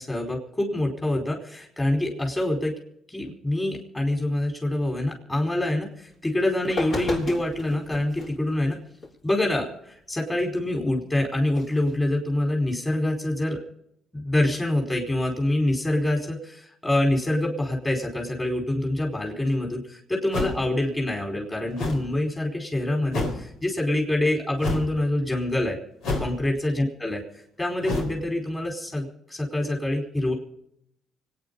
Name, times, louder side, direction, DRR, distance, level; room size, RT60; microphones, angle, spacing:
voice 1, 0.0-2.8 3.1-8.8 9.2-13.6 14.1-25.8 26.2-27.2 27.6-30.3, left 1 dB, 15° left, 2 dB, 4.8 m, -26 dB
sound 1, 6.1-6.2 6.6-8.3 9.0-9.1 11.5-11.9, left 2 dB, 55° left, 7.3 m, -33 dB
sound 2, 20.3-20.7 21.8-22.1 23.1-23.4 24.6-24.9 26.0-26.5 27.8-28.2, left 2 dB, 85° left, 4.2 m, -28 dB
25.0 x 9.7 x 5.5 m, 0.73 s
cardioid pair, 90°, 0 cm